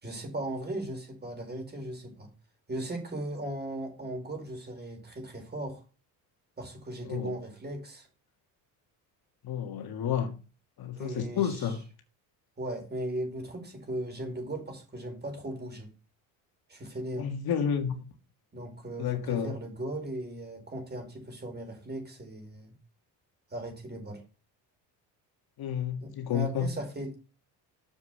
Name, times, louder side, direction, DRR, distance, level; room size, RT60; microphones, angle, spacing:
voice 1, 0.0-2.3 2.7-5.8 6.6-8.1 11.0-11.7 12.6-15.9 16.7-17.3 18.5-22.7 23.5-24.2 26.0-27.2, right 1 dB, 25° right, 4.3 m, -37 dB
voice 2, 9.4-10.3 10.8-11.8 17.2-18.0 19.0-19.6 25.6-26.7, left 8 dB, 60° left, 1.8 m, -30 dB
7.3 x 5.3 x 6.5 m
cardioid pair, 105°, 42 cm